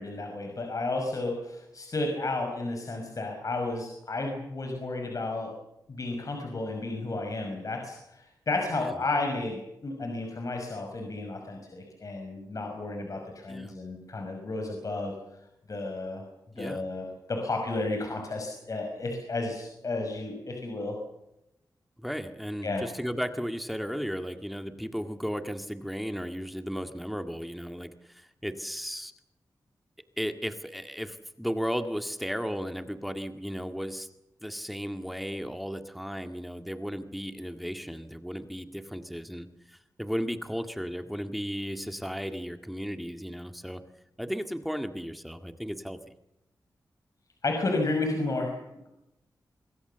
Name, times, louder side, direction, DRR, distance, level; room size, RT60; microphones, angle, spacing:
voice 1, 0.0-5.5 5.9-15.1 15.7-16.2 16.6-21.0 22.6-22.8 47.4-48.6, left 2 dB, 50° left, 3 dB, 5.8 m, -32 dB
voice 2, 22.0-29.1 30.2-34.1 34.4-43.8 44.2-46.0, equal, ahead, 7 dB, 1.9 m, -35 dB
26.0 x 22.5 x 6.9 m, 0.86 s
wide cardioid pair, 90°, 7 cm